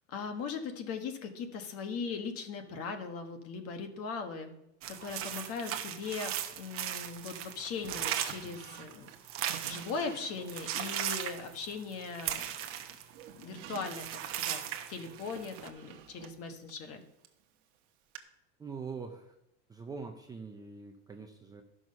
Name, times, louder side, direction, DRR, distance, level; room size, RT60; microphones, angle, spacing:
voice 1, 0.1-4.5 4.9-9.1 9.6-12.5 13.4-14.1 14.3-14.6 14.9-17.0, left 5 dB, 40° left, 6 dB, 1.4 m, -39 dB
sound 1, 4.8-10.0 10.4-13.4 13.7-15.7, right 11 dB, 40° right, 1.0 m, -37 dB
Drawer open or close, 7.9-10.8 11.3-12.3 12.7-17.4 18.2-18.3, right 11 dB, 55° right, 1.2 m, -50 dB
voice 2, 18.6-19.3 19.7-21.6, right 5 dB, 10° right, 3 dB, 0.6 m, -43 dB
12.0 x 6.3 x 5.4 m, 0.84 s
supercardioid pair, 150°, 36 cm